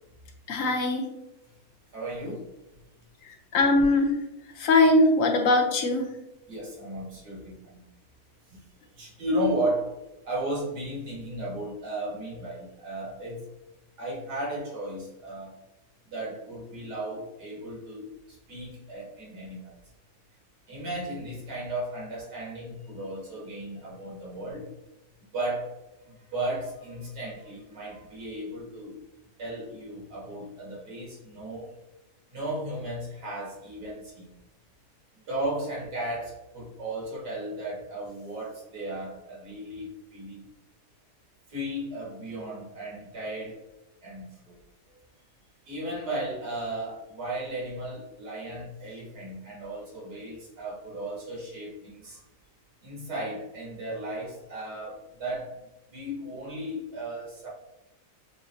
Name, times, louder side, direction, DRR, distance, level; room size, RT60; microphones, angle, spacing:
voice 1, 0.5-1.1 3.2-4.1 4.6-6.1, left 2 dB, 60° left, 3 dB, 1.0 m, -21 dB
voice 2, 1.9-2.5 6.5-7.8 8.5-8.6 8.9-9.9 10.2-13.4 14.0-15.6 16.1-19.7 20.7-24.7 25.3-25.7 26.0-29.0 29.4-31.7 32.3-34.3 35.3-40.4 41.5-43.6 44.0-44.6 45.7-52.2 52.8-57.5, right 1 dB, 85° right, -4 dB, 2.3 m, -35 dB
7.1 x 2.7 x 2.7 m, 0.96 s
omnidirectional pair, 1.7 m